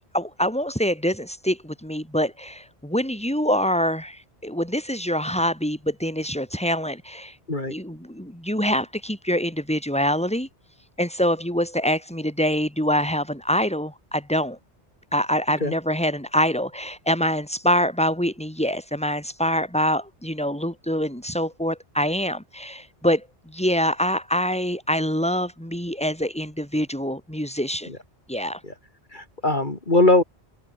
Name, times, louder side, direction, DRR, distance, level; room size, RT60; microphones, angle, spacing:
voice 1, 0.1-7.3 7.7-10.5 11.0-14.6 15.1-27.9 28.3-28.6, equal, 5° left, 6.7 m, -25 dB
voice 2, 29.1-30.2, left 2 dB, 45° left, 3.6 m, -20 dB
omnidirectional pair, 1.1 m